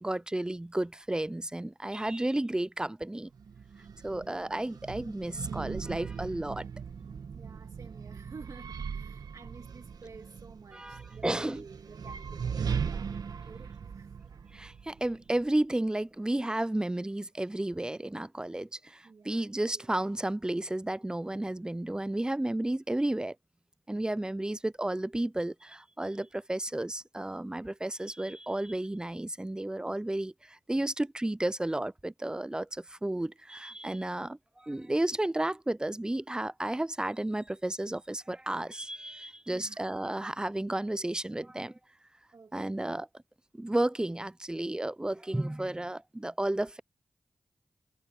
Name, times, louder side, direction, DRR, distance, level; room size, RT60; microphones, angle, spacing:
voice 1, 0.0-3.3 4.0-6.6 10.7-11.6 14.5-23.3 23.9-34.4 34.6-41.7 42.5-43.1 43.6-46.8, right 1 dB, 10° right, 0.4 m, -32 dB
sound 1, 3.3-15.5, right 6 dB, 80° right, 1.4 m, -39 dB
voice 2, 5.1-5.5 7.3-14.1 19.0-19.9 24.0-24.3 39.5-39.8 42.3-42.9, right 4 dB, 65° right, 2.0 m, -51 dB
cardioid pair, 45°, 7 cm